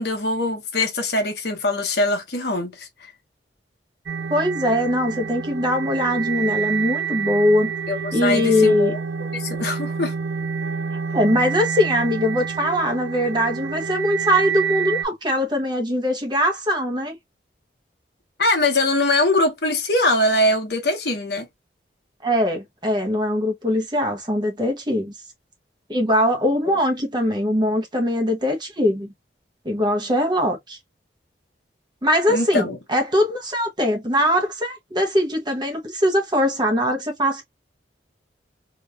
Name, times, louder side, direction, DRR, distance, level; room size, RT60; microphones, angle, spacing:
voice 1, 0.0-3.1 7.9-9.0 9.3-10.1 18.4-21.5 26.7-26.8 32.3-32.8, left 2 dB, 60° left, 1.2 m, -22 dB
sound 1, 4.1-15.0, right 6 dB, 80° right, 0.5 m, -28 dB
voice 2, 4.3-7.7 8.1-8.9 11.1-17.2 22.2-25.1 25.9-29.1 29.6-30.8 32.0-37.4, left 1 dB, 25° right, 1.0 m, -21 dB
3.1 x 3.0 x 2.4 m
head